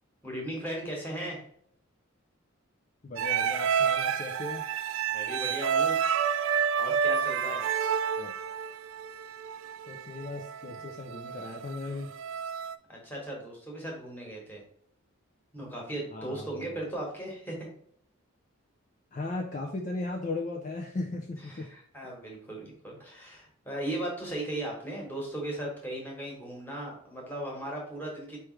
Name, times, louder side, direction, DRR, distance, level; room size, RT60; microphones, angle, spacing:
voice 1, 0.2-1.4 5.1-6.0 6.8-7.7 12.9-14.6 15.5-17.7 21.5-28.4, right 1 dB, 10° left, -2 dB, 1.3 m, -37 dB
voice 2, 3.0-4.7 8.2-8.3 9.9-12.1 16.1-16.7 19.1-21.7, left 2 dB, 35° left, 1 dB, 0.4 m, -37 dB
sound 1, 3.2-12.8, right 7 dB, 65° right, 0.4 m, -29 dB
4.7 x 3.2 x 3.2 m, 0.63 s
head